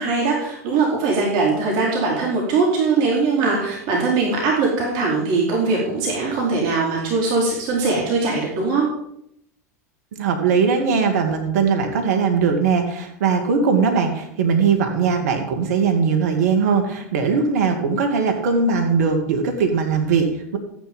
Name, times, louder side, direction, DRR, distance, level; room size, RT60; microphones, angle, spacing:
voice 1, 0.0-8.8, right 4 dB, 55° right, -2 dB, 4.5 m, -21 dB
voice 2, 10.1-20.6, right 5 dB, 70° right, 4 dB, 2.3 m, -20 dB
14.0 x 10.5 x 5.5 m, 0.76 s
hypercardioid pair, 90°, 9 cm